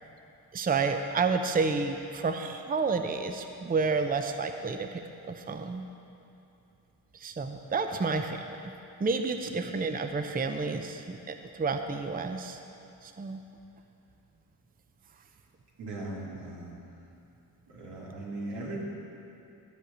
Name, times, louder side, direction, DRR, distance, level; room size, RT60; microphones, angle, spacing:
voice 1, 0.5-5.8 7.1-8.7 9.0-12.6 13.0-13.4, right 4 dB, 25° right, 7 dB, 0.6 m, -30 dB
voice 2, 15.8-16.8 17.7-18.8, right 2 dB, 90° right, -4 dB, 2.5 m, -38 dB
13.0 x 4.9 x 7.9 m, 2.7 s
cardioid pair, 75°, 39 cm